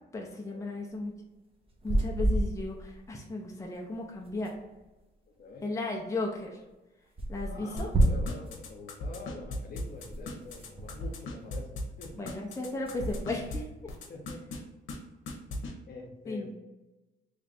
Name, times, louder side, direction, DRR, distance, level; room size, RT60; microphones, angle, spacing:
voice 1, 0.1-1.1 1.8-4.5 5.6-6.6 7.3-7.9 12.2-13.6 16.3-16.5, left 2 dB, 15° left, -1 dB, 0.7 m, -35 dB
sound 1, 1.6-3.1 3.3-3.4 3.6-3.7 3.9-5.0 6.0-6.1 6.4-6.5 7.2-8.6 9.3-11.7 11.9-12.3 12.7-13.8, right 1 dB, 30° right, 0.8 m, -32 dB
voice 2, 5.3-5.7 7.4-11.7 12.0-12.2 14.1-14.4 15.9-16.6, left 3 dB, 50° left, 1 dB, 1.0 m, -45 dB
sound 2, 7.8-13.6 13.9-14.6 14.9-15.0 15.3-15.7, left 3 dB, 80° left, 0.9 m, -38 dB
3.3 x 2.5 x 4.1 m, 1.1 s
cardioid pair, 90°, 20 cm